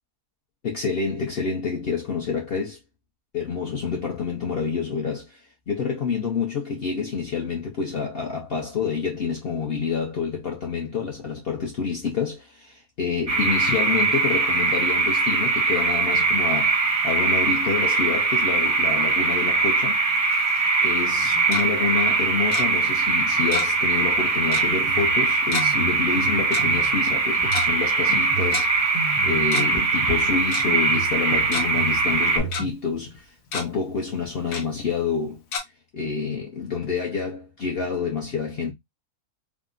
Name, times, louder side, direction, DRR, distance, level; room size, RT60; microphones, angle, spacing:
voice 1, 0.6-2.8 3.3-20.0 20.8-35.4 35.9-38.7, left 5 dB, 55° left, 0.7 m, -28 dB
sound 1, 13.3-32.4, right 4 dB, 40° right, 0.5 m, -22 dB
Tick-tock, 21.2-21.6 22.5-22.6 23.5-23.9 24.1-24.2 24.5-24.7 25.5-25.6 26.5-26.6 27.4-27.6 28.5-28.6 29.3-29.8 30.1-30.2 30.5-30.6 31.2-31.6 32.1-32.6 33.1-33.2 33.5-33.6 34.5-34.6 35.5-35.6, left 4 dB, 85° left, 1.3 m, -30 dB
Drum kit, 24.5-32.7, right 4 dB, 85° right, 1.2 m, -35 dB
3.6 x 2.0 x 2.4 m
omnidirectional pair, 1.6 m